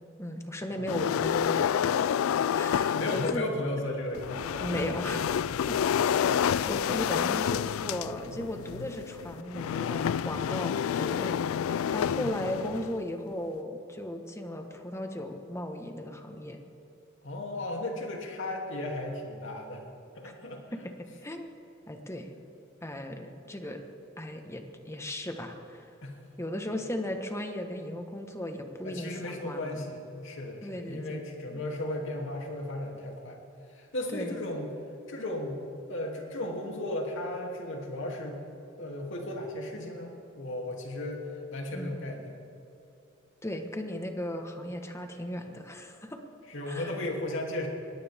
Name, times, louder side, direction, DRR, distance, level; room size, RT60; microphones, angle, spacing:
voice 1, 0.2-2.2 2.5-3.4 4.6-5.3 5.7-5.8 6.7-11.4 11.9-16.6 20.2-20.3 20.8-20.9 21.2-21.5 21.9-22.3 22.8-23.8 24.2-25.9 26.4-29.8 30.6-31.2 31.5-31.6 34.1-34.4 41.7-41.9 43.4-46.2 46.7-46.9, left 1 dB, 15° left, 5 dB, 1.4 m, -36 dB
sound 1, 0.9-3.5 4.1-13.0, left 8 dB, 80° left, 0.3 m, -29 dB
voice 2, 2.9-4.9 12.1-12.3 17.2-19.8 20.1-20.6 26.0-26.2 28.8-33.4 33.7-34.7 35.1-35.6 35.9-38.4 38.8-42.4 46.5-47.7, left 1 dB, 65° left, 0 dB, 2.9 m, -35 dB
22.0 x 17.5 x 3.6 m, 3.0 s
head